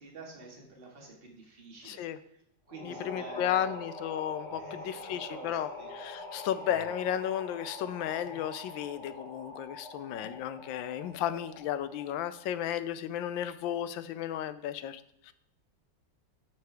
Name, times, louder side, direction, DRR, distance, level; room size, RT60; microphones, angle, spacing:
voice 1, 0.0-2.4 2.7-3.8 4.6-5.9, right 3 dB, 30° right, -1 dB, 1.9 m, -48 dB
voice 2, 1.8-2.2 2.8-5.7 5.9-15.3, left 10 dB, 85° left, 13 dB, 1.3 m, -34 dB
sound 1, 2.7-12.4, left 1 dB, 20° left, 1.1 m, -44 dB
12.5 x 5.7 x 3.4 m, 0.76 s
omnidirectional pair, 2.1 m